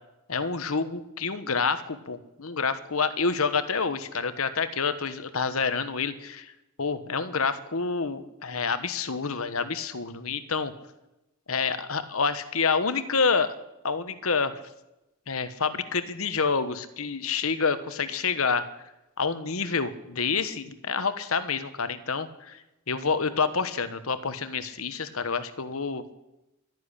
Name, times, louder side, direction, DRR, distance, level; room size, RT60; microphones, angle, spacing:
voice 1, 0.3-6.5 6.8-10.7 11.5-13.5 13.8-14.5 15.3-18.7 19.2-22.6 22.9-26.1, left 5 dB, 70° left, 12 dB, 1.2 m, -28 dB
12.5 x 10.5 x 10.0 m, 0.94 s
head